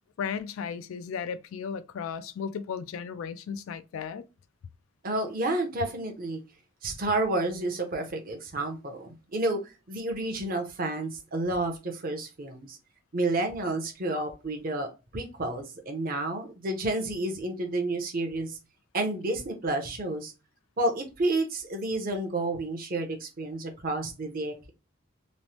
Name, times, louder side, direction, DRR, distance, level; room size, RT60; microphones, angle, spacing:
voice 1, 0.2-4.2, left 6 dB, 75° left, 0.3 m, -35 dB
voice 2, 5.0-6.4 6.8-12.8 13.1-18.6 18.9-20.3 20.8-24.7, right 2 dB, 40° right, 0.7 m, -30 dB
3.0 x 2.0 x 2.8 m
head